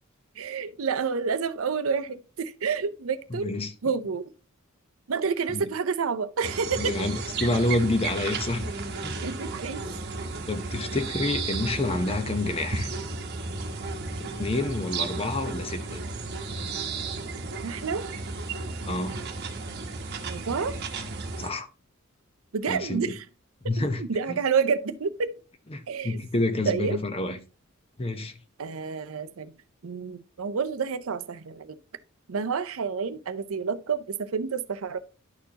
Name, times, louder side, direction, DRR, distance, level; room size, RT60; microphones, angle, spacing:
voice 1, 0.4-3.5 3.8-4.2 5.1-7.1 9.2-10.0 17.6-18.1 20.3-20.8 22.5-23.2 23.8-25.3 25.9-26.2 26.7-27.0 28.6-29.5 29.8-31.8 32.3-35.0, right 5 dB, 70° right, 0.6 m, -29 dB
voice 2, 3.3-3.7 5.5-5.7 6.8-8.7 9.0-9.2 10.5-12.9 14.2-16.0 18.9-19.2 21.4-21.7 22.7-23.2 23.6-24.0 24.3-24.4 25.7-27.4 28.0-28.3, left 2 dB, 25° left, 0.8 m, -28 dB
sound 1, 6.4-21.5, right 3 dB, 50° right, 1.0 m, -33 dB
11.5 x 4.5 x 2.8 m
head